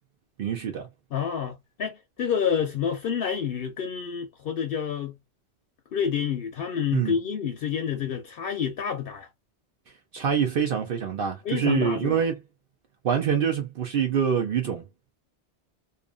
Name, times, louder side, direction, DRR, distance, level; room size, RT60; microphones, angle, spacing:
voice 1, 0.4-0.9 6.9-7.2 9.9-12.4 13.0-14.8, right 8 dB, 60° right, 0.7 m, -25 dB
voice 2, 1.1-5.2 5.9-9.3 11.4-12.2, left 7 dB, 60° left, 0.8 m, -28 dB
2.5 x 2.5 x 2.2 m
omnidirectional pair, 1.1 m